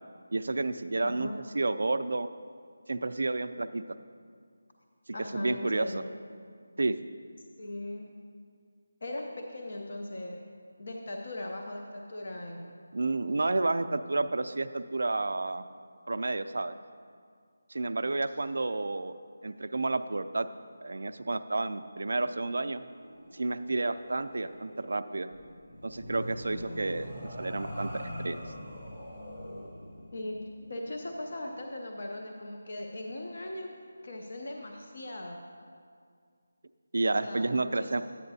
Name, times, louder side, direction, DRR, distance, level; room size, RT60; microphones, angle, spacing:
voice 1, 0.3-2.3 2.9-3.8 5.3-6.0 6.8-7.0 12.9-15.6 16.1-16.8 17.7-19.1 19.4-20.5 20.8-22.8 23.3-25.3 25.8-27.1 27.4-28.4 36.9-38.0, right 2 dB, 55° right, 11 dB, 0.3 m, -30 dB
voice 2, 1.0-1.3 5.1-6.1 7.6-8.1 9.0-10.4 10.8-12.8 15.9-16.0 30.1-30.4 30.7-33.7 34.0-35.4 37.2-38.0, left 1 dB, 40° left, 2 dB, 0.5 m, -39 dB
sound 1, 22.8-31.7, equal, 15° left, 0.9 m, -43 dB
10.5 x 8.7 x 2.7 m, 2.1 s
figure-of-eight pair, 180°, 0 cm